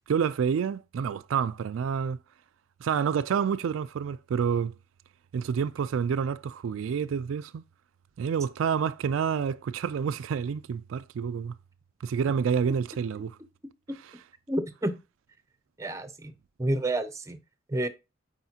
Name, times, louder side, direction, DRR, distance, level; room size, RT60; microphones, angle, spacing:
voice 1, 0.1-2.2 2.8-4.7 5.3-7.6 8.2-11.5 12.0-13.4, right 7 dB, 80° right, 0.3 m, -28 dB
voice 2, 14.5-14.9 15.8-16.3 16.6-17.4 17.7-17.9, right 1 dB, 15° right, 0.6 m, -29 dB
8.9 x 4.3 x 2.8 m
head